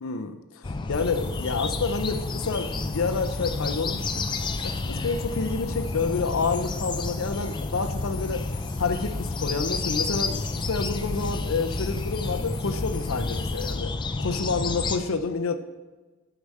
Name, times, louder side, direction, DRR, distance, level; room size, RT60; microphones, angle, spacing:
voice 1, 0.0-4.2 4.6-8.5 8.8-13.9 14.2-15.6, left 4 dB, 75° left, 8 dB, 0.6 m, -29 dB
sound 1, 0.6-15.0, left 3 dB, 20° left, 0.4 m, -30 dB
sound 2, 0.9-13.7, left 3 dB, 45° left, 1.2 m, -42 dB
8.2 x 4.9 x 5.4 m, 1.3 s
head